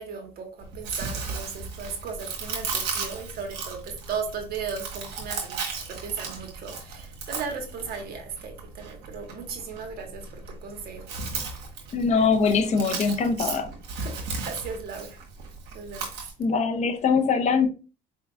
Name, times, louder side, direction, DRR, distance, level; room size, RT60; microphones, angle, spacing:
voice 1, 0.0-5.6 5.9-11.0 14.0-15.2 15.7-16.1, right 6 dB, 65° right, 1.4 m, -36 dB
Chewing mastication, 0.6-16.3, right 4 dB, 80° right, 1.5 m, -36 dB
voice 2, 11.9-13.7 16.4-17.7, left 5 dB, 40° left, 0.8 m, -22 dB
4.5 x 3.6 x 2.5 m
cardioid pair, 110°, 17 cm